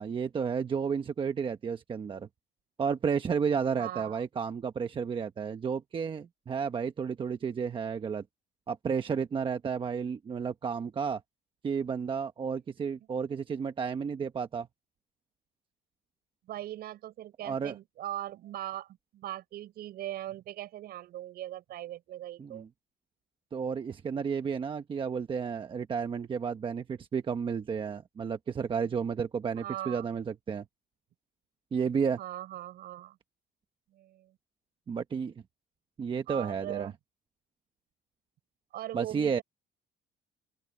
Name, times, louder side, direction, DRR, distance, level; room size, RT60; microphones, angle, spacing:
voice 1, 0.0-2.3 2.8-8.2 8.7-11.2 11.6-14.7 17.4-17.8 22.4-22.7 23.5-30.6 31.7-32.2 34.9-35.3 36.0-36.9 38.9-39.4, right 6 dB, 30° right, 1.1 m, -32 dB
voice 2, 3.8-4.2 16.5-22.6 29.6-30.1 32.2-33.2 33.9-34.4 36.3-36.9 38.7-39.4, right 13 dB, 65° right, 7.1 m, -40 dB
open air
cardioid pair, 140°, 17 cm